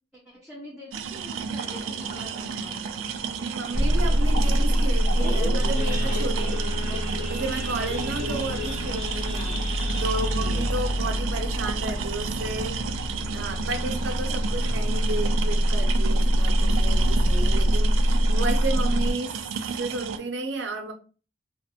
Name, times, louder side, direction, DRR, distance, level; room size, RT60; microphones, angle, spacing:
voice 1, 0.1-2.8 6.4-6.7 12.5-13.0, left 1 dB, 5° right, -4 dB, 0.5 m, -45 dB
sound 1, 0.9-20.2, right 6 dB, 85° right, 0.3 m, -33 dB
Idling / Accelerating revving vroom / Sawing, 1.6-12.7 13.1-13.3 13.6-13.7 14.2-14.4 14.9-15.0 15.2-15.5, left 1 dB, 40° left, 1.0 m, -38 dB
voice 2, 3.3-6.5 6.9-7.0 7.3-12.7 13.3-19.4 19.8-20.9, right 2 dB, 65° right, 2 dB, 0.7 m, -33 dB
sound 2, 3.7-19.1, equal, 60° left, 0.5 m, -25 dB
2.4 x 2.1 x 2.8 m, 0.35 s
head